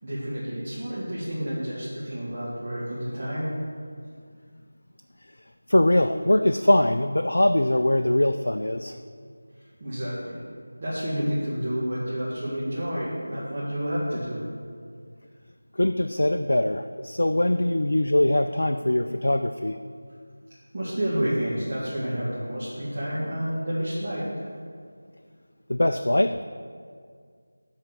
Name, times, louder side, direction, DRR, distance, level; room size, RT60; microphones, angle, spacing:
voice 1, 0.0-3.5 9.8-10.4 10.8-14.4 20.7-24.5, equal, 35° right, -9 dB, 2.2 m, -29 dB
voice 2, 5.7-9.0 15.7-19.8 25.7-26.4, left 1 dB, 60° left, 6 dB, 0.4 m, -22 dB
13.0 x 4.8 x 6.9 m, 2.1 s
figure-of-eight pair, 165°, 0 cm